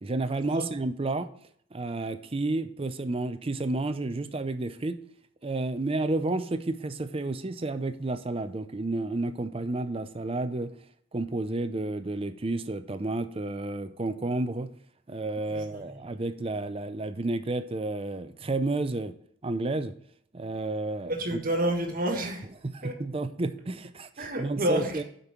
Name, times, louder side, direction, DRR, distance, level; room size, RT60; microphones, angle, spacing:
voice 1, 0.0-1.3 1.7-5.0 5.4-10.7 11.1-14.7 15.1-19.1 19.4-19.9 20.3-21.4 22.6-25.0, right 2 dB, 30° right, 10 dB, 0.5 m, -31 dB
voice 2, 15.5-16.0 21.1-22.5 22.8-22.9 24.2-25.0, right 1 dB, 45° right, 3 dB, 1.5 m, -29 dB
8.0 x 5.3 x 4.4 m, 0.65 s
head